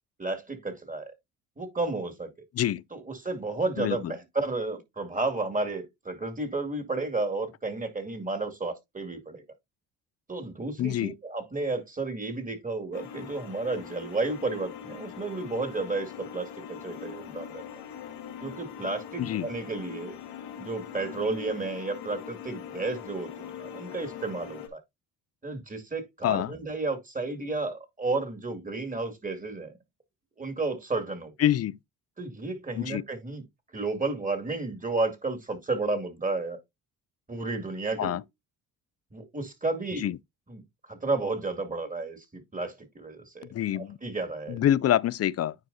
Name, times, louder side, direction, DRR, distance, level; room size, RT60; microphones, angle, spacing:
voice 1, 0.2-1.1 1.6-2.3 2.9-9.4 10.3-17.6 18.4-20.1 20.6-24.8 25.4-29.8 30.4-31.3 32.2-33.4 33.7-36.6 37.3-38.2 39.1-40.1 40.5-40.6 40.9-44.6, right 3 dB, 20° right, 2.3 m, -32 dB
voice 2, 10.8-11.1 19.2-19.5 26.2-26.5 31.4-31.8 32.8-33.0 38.0-38.2 40.0-40.1 43.5-44.0 44.5-45.5, left 11 dB, 40° left, 0.4 m, -26 dB
sound 1, 12.9-24.7, left 8 dB, 85° left, 1.5 m, -42 dB
9.4 x 4.6 x 2.7 m
supercardioid pair, 70°, 39 cm